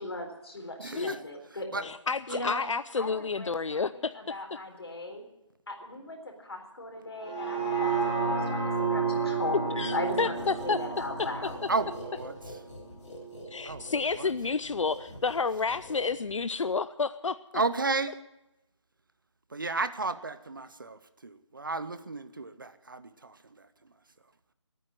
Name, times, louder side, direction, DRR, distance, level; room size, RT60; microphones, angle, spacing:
voice 1, 0.0-1.9 2.3-2.7 3.0-5.2 5.7-10.4 10.6-11.6, left 2 dB, 55° left, 3 dB, 4.0 m, -38 dB
voice 2, 0.8-1.2 1.7-1.8 11.7-12.3 13.6-14.3 17.5-18.1 19.5-23.7, right 3 dB, 45° right, 12 dB, 0.7 m, -33 dB
voice 3, 1.8-4.1 9.8-10.8 13.5-17.4, left 4 dB, 90° left, 14 dB, 0.6 m, -30 dB
sound 1, 7.2-13.4 13.8-13.9, right 4 dB, 20° right, 3.6 m, -31 dB
sound 2, 10.1-16.6, left 1 dB, 10° left, 3.4 m, -46 dB
18.5 x 9.3 x 7.6 m, 0.93 s
figure-of-eight pair, 180°, 16 cm